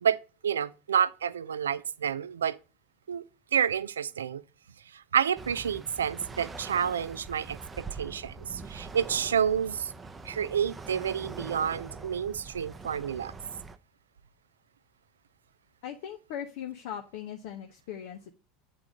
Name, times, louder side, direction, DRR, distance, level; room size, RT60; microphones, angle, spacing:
voice 1, 0.0-2.6 3.1-3.2 3.5-4.4 4.9-9.9 10.2-13.3, right 8 dB, 90° right, 0.3 m, -29 dB
sound 1, 5.4-13.8, right 4 dB, 20° right, 0.6 m, -44 dB
voice 2, 15.8-18.3, left 9 dB, 70° left, 0.7 m, -39 dB
8.3 x 3.8 x 4.9 m
hypercardioid pair, 85°, 0 cm